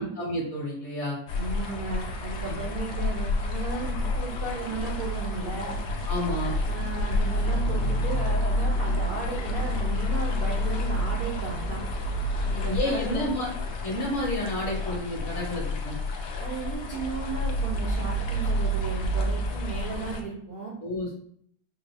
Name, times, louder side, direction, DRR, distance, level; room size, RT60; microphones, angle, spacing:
voice 1, 0.0-1.2 2.4-2.6 6.1-6.5 12.6-13.5 13.8-16.0 20.8-21.2, left 1 dB, 50° left, -2 dB, 1.0 m, -30 dB
sound 1, 1.3-20.2, left 1 dB, 80° left, 0.6 m, -29 dB
voice 2, 1.3-5.7 6.7-11.8 12.5-13.3 16.4-20.7, right 4 dB, 55° right, -3 dB, 0.6 m, -35 dB
4.6 x 2.4 x 3.4 m, 0.65 s
omnidirectional pair, 1.9 m